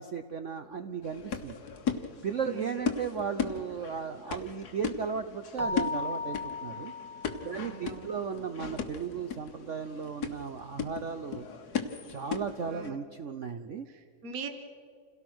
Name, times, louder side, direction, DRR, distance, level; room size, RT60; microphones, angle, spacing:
voice 1, 0.0-1.6 2.2-6.9 7.4-11.5 12.1-13.9, right 6 dB, 65° right, 8 dB, 0.7 m, -35 dB
sound 1, 1.0-12.9, left 6 dB, 55° left, 1.6 m, -37 dB
voice 2, 2.4-2.8 7.4-8.2 12.7-13.0 13.9-14.5, right 4 dB, 45° right, 6 dB, 1.8 m, -42 dB
Keyboard (musical), 5.6-8.0, left 3 dB, 20° right, 0.4 m, -36 dB
28.0 x 17.5 x 6.2 m, 2.2 s
omnidirectional pair, 2.2 m